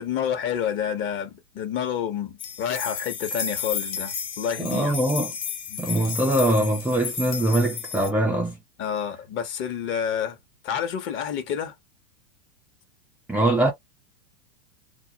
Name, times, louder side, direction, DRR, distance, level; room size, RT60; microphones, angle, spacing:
voice 1, 0.0-4.9 5.7-5.8 8.8-10.4 10.6-11.8, left 8 dB, 35° left, 0.9 m, -29 dB
sound 1, 2.4-8.1, left 6 dB, 80° left, 0.9 m, -32 dB
voice 2, 4.6-5.3 5.8-8.6 13.3-13.7, right 1 dB, 5° right, 0.3 m, -22 dB
2.4 x 2.0 x 2.8 m
hypercardioid pair, 105°, 33 cm